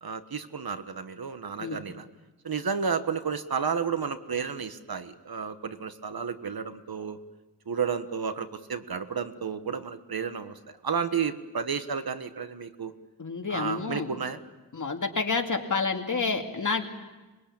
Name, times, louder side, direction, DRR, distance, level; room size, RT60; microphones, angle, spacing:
voice 1, 0.0-2.1 2.4-7.2 7.7-12.9 13.5-14.4, right 6 dB, 65° right, 10 dB, 1.5 m, -32 dB
voice 2, 13.2-14.1 14.7-16.9, left 4 dB, 50° left, 3 dB, 2.6 m, -29 dB
26.0 x 21.5 x 8.8 m, 1.1 s
wide cardioid pair, 80°, 39 cm